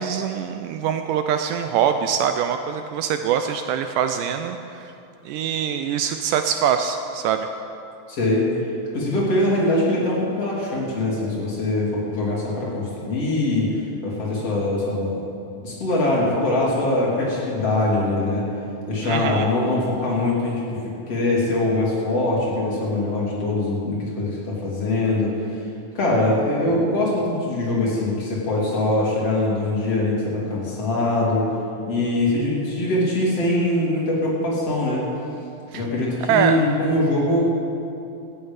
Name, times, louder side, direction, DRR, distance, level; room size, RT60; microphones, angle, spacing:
voice 1, 0.0-4.9 5.3-7.5 19.0-19.5 35.7-35.9 36.3-36.6, right 8 dB, 80° right, 7 dB, 2.0 m, -23 dB
voice 2, 8.1-8.5 8.9-15.2 15.6-18.5 18.9-20.8 21.1-25.3 26.0-31.5 31.9-35.0 35.7-37.4, left 2 dB, 45° left, -5 dB, 4.0 m, -22 dB
14.5 x 8.9 x 9.0 m, 2.7 s
omnidirectional pair, 4.0 m